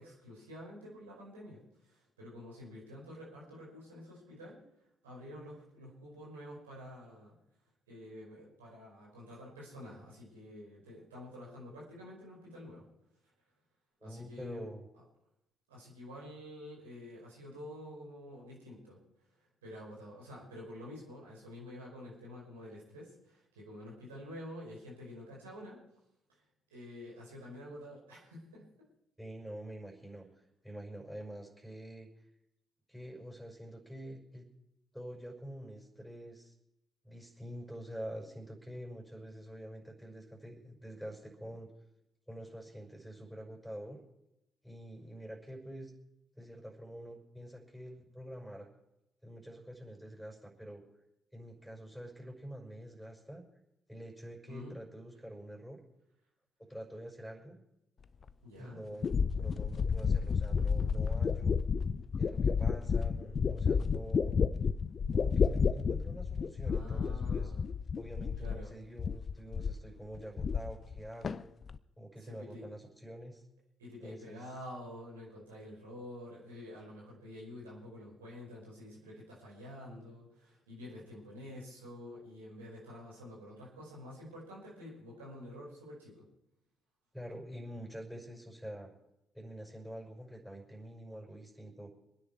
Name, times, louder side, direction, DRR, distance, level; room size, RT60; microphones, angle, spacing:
voice 1, 0.0-4.6 5.0-7.4 7.9-12.9 14.0-14.6 15.7-19.0 19.4-25.8 26.3-26.4 26.7-28.7 54.5-54.8 58.4-58.8 66.6-67.6 68.4-68.7 72.2-72.7 73.8-86.2, left 1 dB, 80° right, -4 dB, 5.2 m, -48 dB
voice 2, 14.0-14.8 29.2-30.2 30.6-32.1 32.9-34.5 34.9-36.5 37.0-41.7 42.3-44.0 44.6-45.9 46.3-48.7 49.2-50.8 51.3-53.4 53.9-55.8 56.6-57.6 58.6-61.6 62.2-64.4 65.1-67.5 68.0-71.5 72.0-73.4 74.0-74.4 87.1-88.9 89.3-91.9, equal, ahead, -1 dB, 6.0 m, -46 dB
sound 1, 58.3-58.4 59.0-68.7 69.0-69.9 70.1-71.0 71.2-71.8, left 6 dB, 45° left, 0.6 m, -31 dB
26.0 x 9.9 x 4.6 m, 0.85 s
figure-of-eight pair, 45°, 0 cm